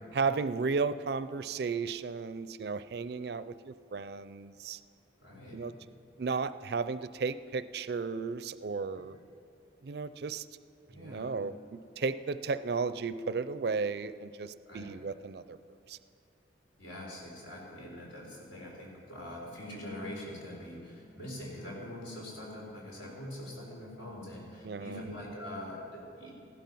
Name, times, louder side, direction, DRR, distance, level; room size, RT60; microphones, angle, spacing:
voice 1, 0.1-4.8 5.5-5.7 6.2-9.2 9.8-10.4 11.0-15.6 15.9-16.0 24.6-25.1, right 4 dB, 55° right, 14 dB, 0.4 m, -34 dB
voice 2, 5.2-5.6 10.9-11.3 14.7-14.9 16.8-26.3, left 1 dB, 85° left, -2 dB, 4.1 m, -43 dB
15.5 x 12.0 x 5.5 m, 2.6 s
head